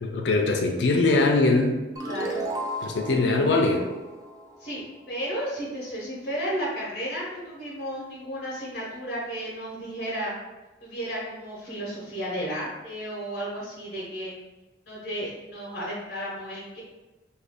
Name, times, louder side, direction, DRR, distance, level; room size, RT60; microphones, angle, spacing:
voice 1, 0.0-1.8 2.8-3.8, left 2 dB, 80° left, 2 dB, 0.4 m, -22 dB
voice 2, 2.0-2.4 4.6-10.3 10.8-14.3 14.9-16.8, equal, 50° left, -6 dB, 0.8 m, -33 dB
sound 1, 2.0-5.2, right 1 dB, 20° right, 0.3 m, -35 dB
2.5 x 2.3 x 3.4 m, 1.1 s
head